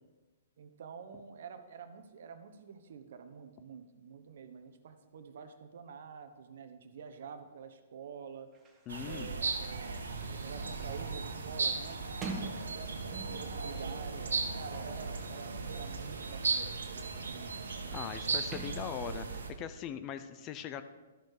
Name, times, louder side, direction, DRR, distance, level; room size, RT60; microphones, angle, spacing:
voice 1, 0.6-8.5 9.0-12.0 12.3-12.8 13.3-17.6, right 6 dB, 65° right, 9 dB, 1.0 m, -48 dB
Sliding door, 8.5-13.6 14.5-19.5, right 3 dB, 20° right, 1.5 m, -49 dB
voice 2, 8.9-9.4 17.9-20.8, left 9 dB, 30° left, 11 dB, 0.6 m, -41 dB
sound 1, 8.9-19.5, right 4 dB, 85° right, 1.5 m, -37 dB
13.0 x 6.4 x 5.0 m, 1.2 s
hypercardioid pair, 135°, 0 cm